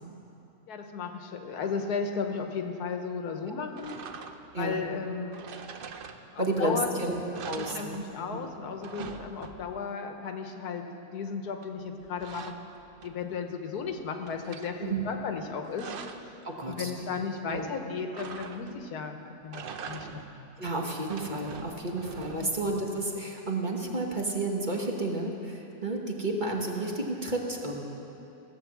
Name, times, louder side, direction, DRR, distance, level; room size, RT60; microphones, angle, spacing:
voice 1, 0.7-4.0 4.6-5.4 6.3-6.9 7.5-12.6 13.0-16.2 16.7-19.2 19.4-20.5 22.1-22.5, left 5 dB, 90° left, 5 dB, 1.5 m, -35 dB
sound 1, 3.8-4.6 5.3-6.6 6.9-7.0 7.3-8.4 8.7-9.9 11.6-13.4 13.8-14.7 15.4-16.4 18.1-18.9 19.4-20.4 20.9-22.7, right 6 dB, 55° right, 0.6 m, -44 dB
voice 2, 6.4-8.0 8.3-8.5 14.8-15.1 16.4-16.9 17.5-17.7 20.6-27.8, right 2 dB, 35° right, -1 dB, 1.3 m, -31 dB
16.5 x 7.7 x 7.3 m, 3.0 s
omnidirectional pair, 1.6 m